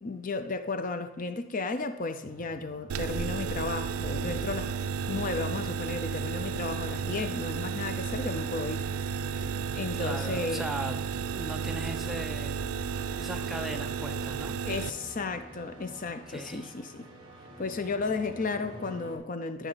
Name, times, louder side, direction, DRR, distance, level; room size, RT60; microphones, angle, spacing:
voice 1, 0.0-4.7 5.1-8.9 9.3-9.5 9.7-10.7 14.6-17.1 17.6-19.7, left 3 dB, 40° left, 0.5 m, -34 dB
sound 1, 2.2-19.2, right 1 dB, 25° right, 1.8 m, -47 dB
sound 2, 2.9-14.9, right 6 dB, 90° right, 0.4 m, -33 dB
voice 2, 9.9-11.0 11.3-12.6 13.2-14.6 16.3-16.7, right 1 dB, ahead, 0.6 m, -38 dB
13.5 x 5.5 x 4.0 m
head